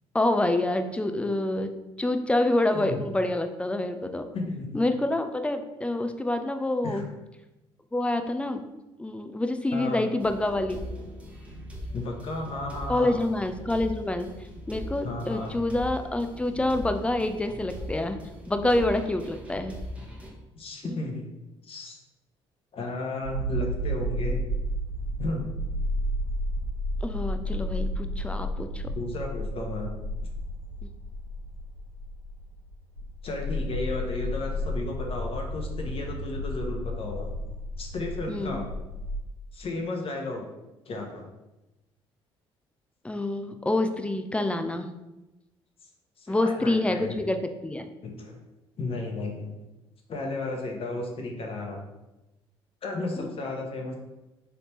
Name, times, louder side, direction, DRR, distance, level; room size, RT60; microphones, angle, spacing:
voice 1, 0.1-1.7 2.0-4.3 4.7-7.1 7.9-8.6 9.0-10.9 12.9-14.3 14.7-18.2 18.5-19.8 20.9-21.0 27.0-28.8 38.3-38.6 43.0-44.9 46.3-47.4 47.6-47.9 53.2-53.3, left 1 dB, 10° left, 8 dB, 0.4 m, -27 dB
voice 2, 2.7-3.0 4.3-4.8 6.8-7.0 9.7-10.1 11.9-13.2 15.0-15.5 20.5-21.3 21.6-22.0 22.7-24.4 25.2-25.5 28.8-29.9 33.2-37.3 37.8-38.7 39.5-40.4 40.9-41.3 46.2-47.2 48.0-48.4 48.8-49.6 50.1-51.8 52.8-53.9, left 2 dB, 45° left, 1 dB, 0.9 m, -33 dB
sound 1, 10.2-20.3, left 1 dB, 10° right, 1.1 m, -40 dB
sound 2, 23.2-39.2, equal, 90° left, 1.0 m, -32 dB
4.0 x 3.4 x 3.0 m, 1.0 s
hypercardioid pair, 55°, 13 cm